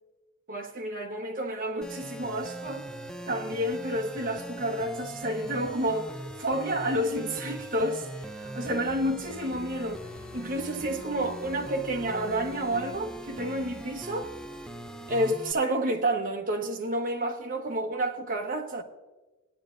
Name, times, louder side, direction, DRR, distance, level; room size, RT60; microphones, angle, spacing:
voice 1, 0.5-2.8 3.3-6.1 6.4-8.1 8.4-10.0 10.3-14.3 15.1-18.8, right 1 dB, 40° right, 1.2 m, -30 dB
sound 1, 1.8-15.5, right 1 dB, 5° left, 0.6 m, -41 dB
17.5 x 10.0 x 2.6 m
head